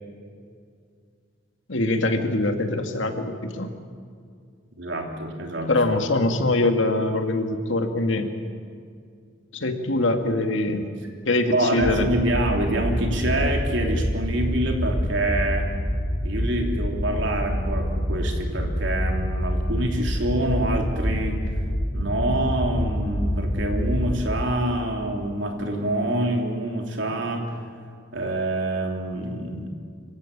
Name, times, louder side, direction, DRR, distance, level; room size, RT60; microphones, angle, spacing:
voice 1, 1.7-3.7 5.7-8.3 9.5-10.8 11.3-12.1, left 2 dB, 80° left, 5 dB, 2.0 m, -23 dB
voice 2, 4.8-5.7 11.5-15.7 16.2-21.4 21.9-27.4 28.1-29.7, right 1 dB, 70° right, 2 dB, 3.2 m, -26 dB
sound 1, 11.8-24.2, equal, 45° left, 4.5 m, -26 dB
26.0 x 16.0 x 8.6 m, 2.2 s
head